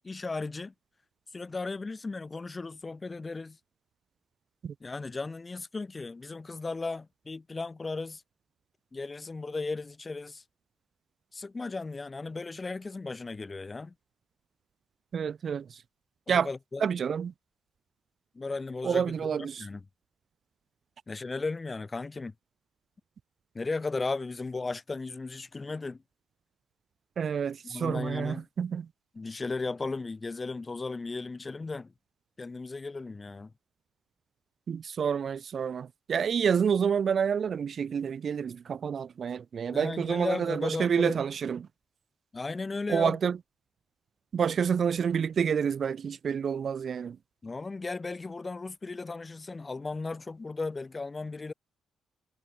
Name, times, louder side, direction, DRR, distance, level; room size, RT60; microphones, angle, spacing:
voice 1, 0.0-0.7 1.3-3.6 4.8-8.2 8.9-10.4 11.3-13.9 16.3-16.8 18.3-19.1 19.4-19.8 21.1-22.3 23.5-26.0 27.6-28.5 29.1-31.9 32.4-33.5 39.7-41.2 42.3-43.2 47.4-51.5, left 3 dB, 25° left, 1.0 m, -36 dB
voice 2, 15.1-15.8 16.3-16.5 16.8-17.3 18.8-19.7 27.2-28.9 34.7-41.7 42.9-43.4 44.3-47.2, right 7 dB, 50° right, 0.3 m, -28 dB
cardioid pair, 90°, 0 cm